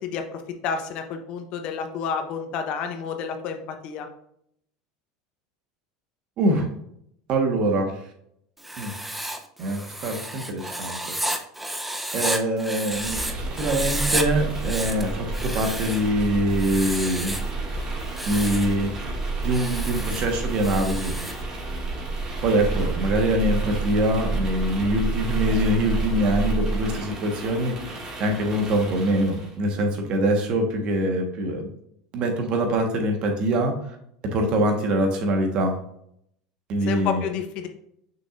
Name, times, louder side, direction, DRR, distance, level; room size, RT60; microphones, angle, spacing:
voice 1, 0.0-4.1 36.8-37.7, left 6 dB, 55° left, 6 dB, 1.0 m, -30 dB
voice 2, 6.4-6.7 7.3-7.9 8.8-8.9 9.6-11.0 12.1-15.1 15.4-17.6 18.2-18.9 19.4-21.2 22.4-31.7 32.1-34.0 34.3-35.7 36.7-37.3, right 1 dB, 55° right, 3 dB, 1.5 m, -24 dB
Writing, 8.6-13.3 13.6-14.2 14.6-16.1 16.5-17.5 18.0-18.7 19.4-21.4, right 1 dB, 5° right, 0.7 m, -31 dB
sound 1, 12.8-29.5, right 3 dB, 35° right, 2.3 m, -30 dB
6.2 x 5.9 x 2.6 m, 0.71 s
hypercardioid pair, 95°, 2 cm